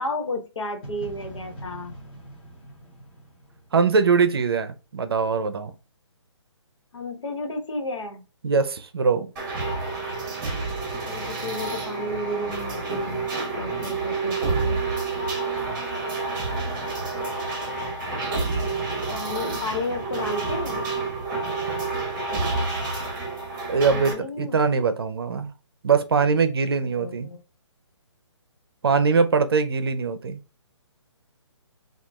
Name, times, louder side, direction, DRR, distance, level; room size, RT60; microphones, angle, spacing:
voice 1, 0.0-1.9 6.9-8.2 10.7-13.3 13.6-14.8 19.1-20.8 23.9-24.6 26.8-27.4, left 1 dB, 75° left, 1.3 m, -32 dB
sound 1, 0.8-4.7, right 1 dB, 15° left, 0.9 m, -43 dB
voice 2, 3.7-5.7 8.4-9.3 23.7-25.5 25.8-27.3 28.8-30.4, right 5 dB, 55° right, 0.6 m, -22 dB
sound 2, 9.4-24.1, right 3 dB, 15° right, 0.9 m, -29 dB
5.8 x 2.4 x 2.3 m
hypercardioid pair, 170°, 16 cm